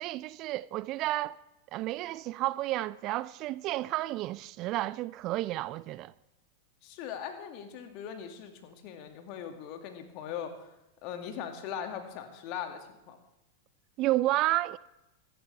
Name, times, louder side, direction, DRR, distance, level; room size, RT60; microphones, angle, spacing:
voice 1, 0.0-1.4 1.7-6.1 14.0-14.8, right 16 dB, 40° right, 0.4 m, -31 dB
voice 2, 6.8-10.7 11.0-13.2, left 8 dB, 45° left, 2.2 m, -40 dB
24.5 x 11.5 x 3.4 m
figure-of-eight pair, 90°, 0 cm